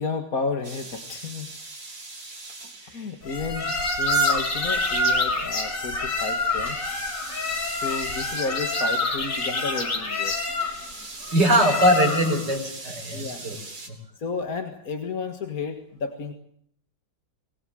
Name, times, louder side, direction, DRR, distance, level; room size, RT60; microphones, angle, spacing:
voice 1, 0.0-1.6 2.8-6.9 7.7-10.4 13.1-13.4 14.2-16.3, left 4 dB, 50° left, 5 dB, 2.2 m, -32 dB
sound 1, 0.6-3.5 6.7-9.1 10.6-13.9, right 2 dB, 85° right, 5.2 m, -41 dB
sound 2, 3.3-12.5, left 2 dB, 70° left, 4.1 m, -26 dB
voice 2, 11.3-13.6, equal, 65° right, 1 dB, 6.5 m, -21 dB
25.5 x 20.5 x 7.7 m, 0.66 s
omnidirectional pair, 2.0 m